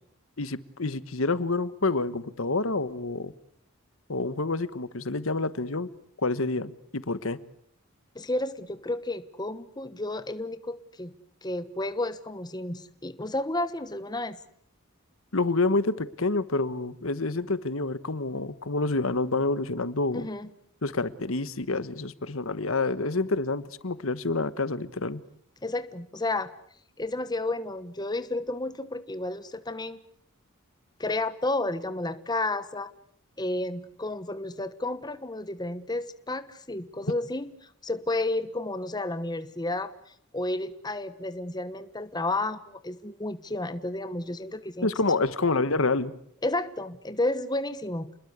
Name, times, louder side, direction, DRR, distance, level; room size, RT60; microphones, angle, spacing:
voice 1, 0.4-3.3 4.1-5.9 6.2-7.4 15.3-20.3 20.8-25.2 44.8-46.1, left 3 dB, 65° left, 15 dB, 1.3 m, -28 dB
voice 2, 8.1-11.1 11.4-14.4 20.1-20.5 25.6-26.5 27.0-30.0 31.0-32.9 33.4-37.5 37.8-44.9 46.4-48.1, left 2 dB, 20° left, 12 dB, 1.2 m, -31 dB
29.5 x 21.0 x 8.1 m, 0.65 s
head